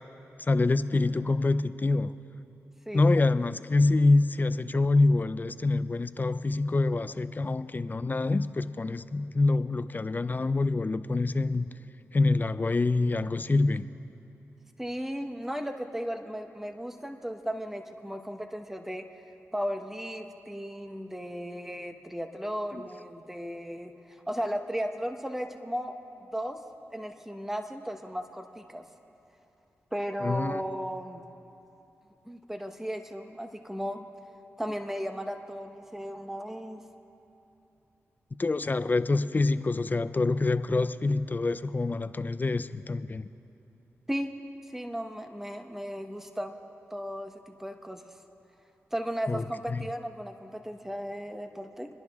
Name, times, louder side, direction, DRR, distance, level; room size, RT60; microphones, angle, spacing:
voice 1, 0.4-2.1 2.9-11.7 12.1-13.9 22.7-22.8 30.2-30.6 38.4-43.3 49.3-49.8, left 3 dB, 35° left, 13 dB, 0.5 m, -26 dB
voice 2, 2.9-3.2 14.8-19.0 19.5-25.9 26.3-26.6 26.9-28.8 29.9-31.2 32.3-34.1 34.6-36.8 44.1-44.3 44.7-46.6 46.9-48.0 48.9-51.9, equal, 5° right, 5 dB, 1.1 m, -35 dB
28.5 x 10.5 x 3.6 m, 2.8 s
cardioid pair, 55°, 5 cm